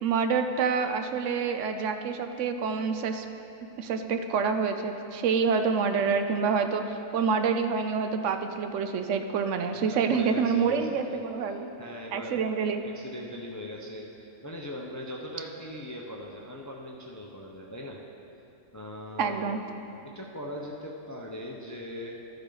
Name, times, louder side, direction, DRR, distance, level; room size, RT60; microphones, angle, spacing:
voice 1, 0.0-3.3 3.8-11.7 12.1-12.8 19.2-19.6, right 5 dB, 75° right, 7 dB, 0.9 m, -27 dB
voice 2, 9.8-11.2 11.5-12.5 12.8-18.0 18.7-19.6 20.0-22.2, left 1 dB, 20° left, -1 dB, 0.5 m, -40 dB
13.0 x 6.9 x 3.9 m, 2.8 s
omnidirectional pair, 1.3 m